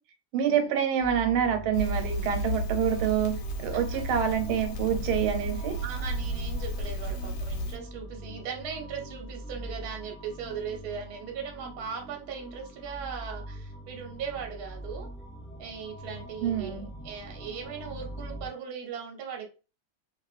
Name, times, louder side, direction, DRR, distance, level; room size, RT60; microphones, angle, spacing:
voice 1, 0.3-5.8 16.4-16.9, right 8 dB, 85° right, 1.5 m, -27 dB
sound 1, 1.0-18.5, right 1 dB, 5° left, 1.2 m, -43 dB
Crackle, 1.7-7.8, equal, 85° left, 1.5 m, -33 dB
voice 2, 5.8-15.1 15.6-19.5, right 6 dB, 60° right, 1.2 m, -38 dB
2.9 x 2.9 x 2.4 m
omnidirectional pair, 2.2 m